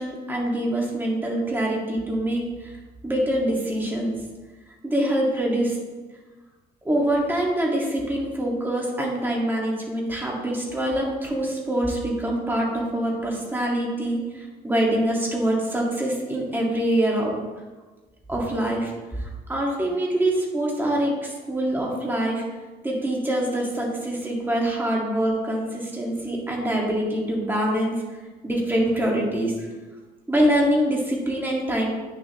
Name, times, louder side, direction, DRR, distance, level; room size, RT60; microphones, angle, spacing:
voice 1, 0.0-2.8 3.0-4.2 4.7-5.8 6.8-17.3 18.3-22.4 22.8-29.7 30.3-31.9, right 1 dB, 10° right, -2 dB, 2.1 m, -25 dB
9.2 x 6.8 x 3.2 m, 1.3 s
cardioid pair, 110°, 17 cm